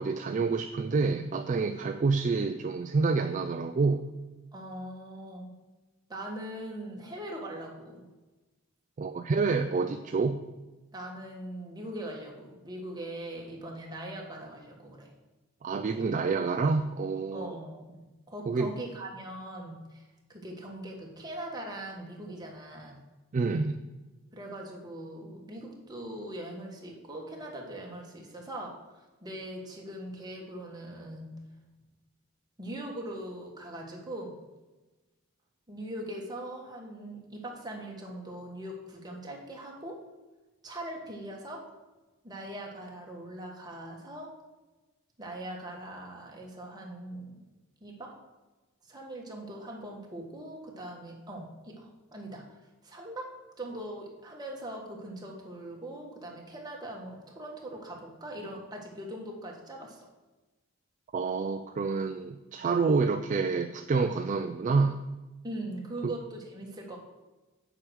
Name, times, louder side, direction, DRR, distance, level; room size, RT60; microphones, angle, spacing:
voice 1, 0.0-4.1 9.0-10.4 15.6-17.5 18.5-18.7 23.3-23.8 61.1-65.0 66.0-66.1, right 4 dB, 40° right, 7 dB, 0.3 m, -28 dB
voice 2, 4.5-5.5 6.1-8.1 10.9-15.1 17.3-23.0 24.3-31.4 32.6-34.3 35.7-40.0 40.6-41.6 42.2-44.3 45.2-47.4 47.8-48.1 48.8-52.4 52.8-53.3 53.6-60.1 65.4-67.0, right 1 dB, 20° right, -1 dB, 1.5 m, -41 dB
7.6 x 5.0 x 6.2 m, 1.2 s
head